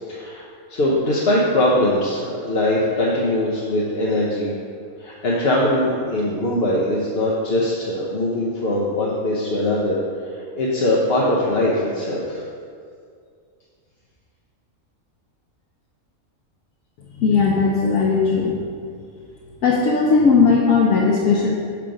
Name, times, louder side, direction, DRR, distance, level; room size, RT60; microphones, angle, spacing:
voice 1, 0.1-0.4 0.7-4.5 5.0-10.0 10.3-12.4, left 1 dB, 50° left, -5 dB, 1.0 m, -21 dB
voice 2, 17.2-18.6 19.6-21.5, left 4 dB, 75° left, -2 dB, 1.1 m, -17 dB
7.4 x 4.7 x 5.1 m, 2.2 s
omnidirectional pair, 1.4 m